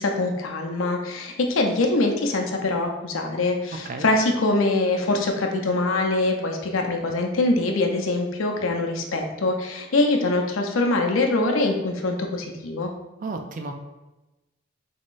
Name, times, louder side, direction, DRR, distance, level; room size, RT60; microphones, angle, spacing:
voice 1, 0.0-12.9, left 2 dB, 85° left, 2 dB, 0.6 m, -23 dB
voice 2, 3.7-4.1 13.2-13.8, right 3 dB, 40° right, 4 dB, 0.3 m, -33 dB
3.7 x 3.7 x 2.5 m, 1.1 s
head